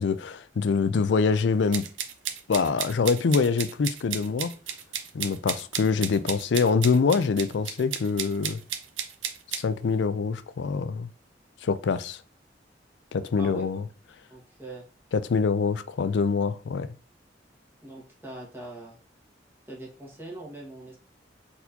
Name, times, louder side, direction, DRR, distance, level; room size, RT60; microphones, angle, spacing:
voice 1, 0.0-1.8 2.5-4.5 5.1-8.6 9.5-11.1 11.6-12.2 13.1-13.8 15.1-16.9, left 5 dB, 70° left, 0.4 m, -25 dB
sound 1, 1.7-9.6, right 9 dB, 90° right, 0.6 m, -33 dB
voice 2, 14.3-14.8 17.8-19.0 19.7-21.0, right 2 dB, 15° right, 1.5 m, -41 dB
4.3 x 4.2 x 2.7 m
head